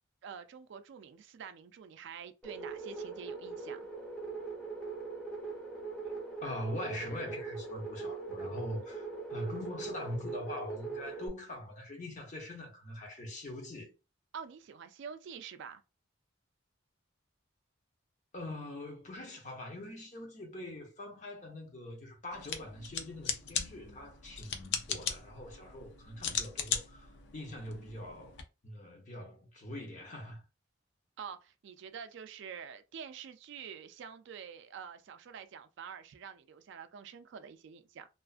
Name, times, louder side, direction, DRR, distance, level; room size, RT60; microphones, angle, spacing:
voice 1, 0.2-3.9 14.3-15.8 31.2-38.1, right 7 dB, 60° right, 0.3 m, -47 dB
sound 1, 2.4-11.3, right 4 dB, 5° left, 0.7 m, -41 dB
voice 2, 6.4-13.9 18.3-28.4 28.6-30.4, left 1 dB, 40° left, 0.8 m, -43 dB
sound 2, 22.3-28.4, left 7 dB, 60° left, 0.4 m, -38 dB
2.4 x 2.4 x 2.4 m
head